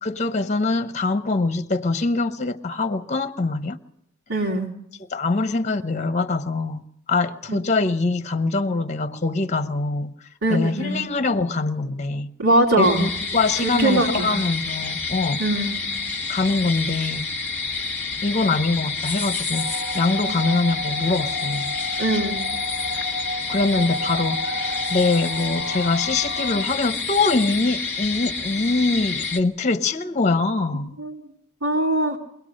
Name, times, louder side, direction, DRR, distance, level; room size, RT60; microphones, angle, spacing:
voice 1, 0.0-3.8 5.0-10.1 10.5-12.3 12.8-15.4 16.3-17.3 18.2-21.8 23.5-31.0, left 3 dB, 35° left, 0.9 m, -23 dB
voice 2, 4.3-4.7 7.5-7.6 10.4-11.0 12.4-13.1 13.6-14.3 15.4-15.7 20.3-20.4 22.0-22.4 31.0-31.2 31.6-32.2, right 1 dB, 75° right, 2.6 m, -21 dB
sound 1, 12.8-29.4, left 4 dB, 10° left, 1.5 m, -29 dB
sound 2, 19.5-26.7, left 1 dB, 20° right, 1.5 m, -31 dB
23.5 x 18.0 x 6.4 m
head